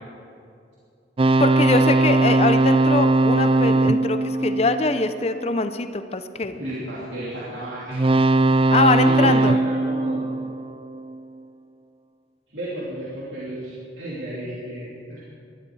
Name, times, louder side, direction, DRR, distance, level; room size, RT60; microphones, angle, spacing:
sound 1, 1.2-5.6 7.9-11.2, right 2 dB, 30° right, 0.3 m, -20 dB
voice 1, 1.4-6.6 8.7-9.6, left 3 dB, 35° left, 9 dB, 0.6 m, -23 dB
voice 2, 6.6-8.0 9.0-10.2 12.5-15.3, right 1 dB, 70° right, -8 dB, 3.2 m, -33 dB
19.5 x 12.5 x 4.8 m, 2.5 s
head